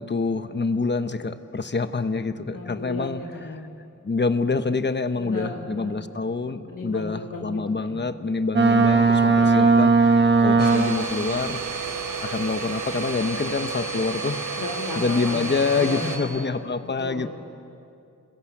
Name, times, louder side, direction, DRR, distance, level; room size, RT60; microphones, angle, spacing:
voice 1, 0.0-3.2 4.0-11.6 12.2-14.4 15.0-17.3, left 4 dB, 35° left, 10 dB, 1.0 m, -26 dB
voice 2, 2.5-3.7 5.2-6.0 6.6-8.4 14.6-16.5 16.8-17.3, left 2 dB, 75° left, 0 dB, 2.2 m, -35 dB
Boat Water vehicle, 8.5-11.2, right 4 dB, 35° right, 1.5 m, -17 dB
Domestic sounds home sounds, 10.6-16.2, right 4 dB, 80° right, 3.3 m, -31 dB
27.5 x 21.0 x 8.5 m, 2.6 s
wide cardioid pair, 135°, 33 cm